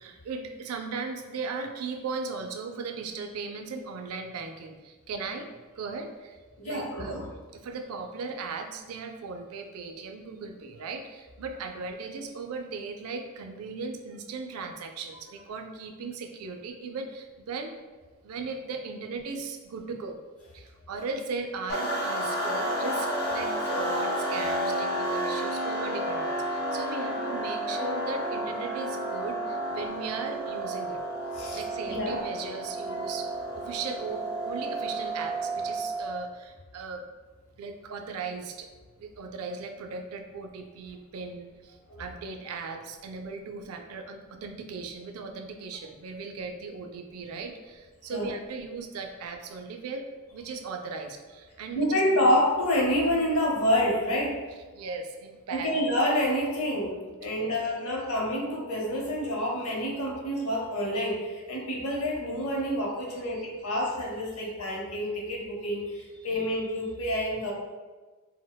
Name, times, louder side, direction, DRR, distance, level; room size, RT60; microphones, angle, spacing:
voice 1, 0.0-6.4 6.6-7.2 7.5-17.7 18.2-20.2 20.5-31.0 31.5-33.3 33.5-37.0 37.6-38.7 39.0-52.3 54.7-55.7 57.4-57.6, right 4 dB, 85° right, 5 dB, 0.4 m, -37 dB
voice 2, 6.6-7.2 22.6-23.6 31.4-32.2 32.9-33.0 41.9-42.0 48.1-48.3 51.8-54.4 55.5-67.5, equal, 75° left, -2 dB, 0.7 m, -28 dB
sound 1, 21.7-36.2, right 1 dB, 45° left, 0.7 m, -31 dB
4.1 x 2.0 x 2.2 m, 1.3 s
head